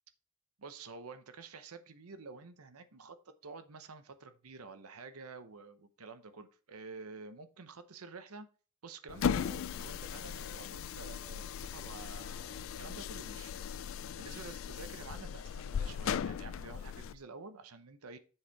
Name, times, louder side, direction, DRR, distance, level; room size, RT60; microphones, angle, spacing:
voice 1, 0.6-8.5 8.8-18.2, right 4 dB, 85° right, 0.8 m, -50 dB
sound 1, 9.1-17.2, left 7 dB, 65° left, 0.3 m, -38 dB
7.2 x 4.8 x 4.6 m
head